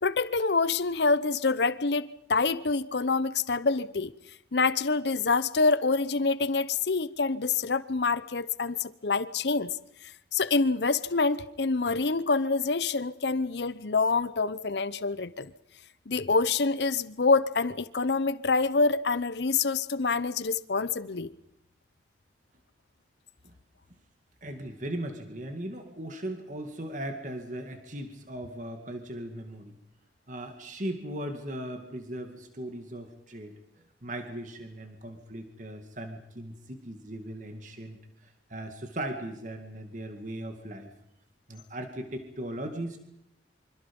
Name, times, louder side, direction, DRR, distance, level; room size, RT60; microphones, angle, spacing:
voice 1, 0.0-4.1 4.5-9.7 10.3-15.5 16.1-21.3, left 4 dB, 75° left, 0.9 m, -26 dB
voice 2, 24.4-29.8 30.3-40.9 41.5-43.0, right 1 dB, 45° right, 2.2 m, -38 dB
26.0 x 25.5 x 5.4 m
head